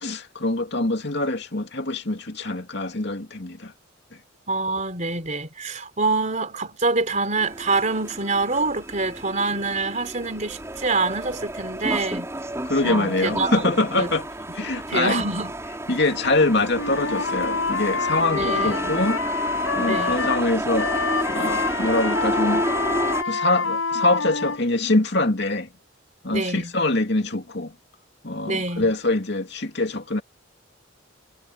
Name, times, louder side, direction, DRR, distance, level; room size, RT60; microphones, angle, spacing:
voice 1, 0.0-3.7 12.6-14.3 14.5-15.2 15.9-19.2 19.7-20.9 21.3-22.6 23.3-25.7 26.2-27.7 28.2-30.2, left 2 dB, 55° left, 2.7 m, -24 dB
voice 2, 4.5-12.3 12.8-13.6 14.0-14.1 14.9-15.5 18.3-18.9 19.9-20.2 26.3-26.7 28.5-28.9, right 3 dB, 40° right, 4.0 m, -26 dB
sound 1, 7.4-23.2, right 1 dB, 15° right, 5.8 m, -31 dB
Wind instrument woodwind instrument, 16.7-20.4 20.7-24.6, left 4 dB, 90° left, 5.6 m, -26 dB
head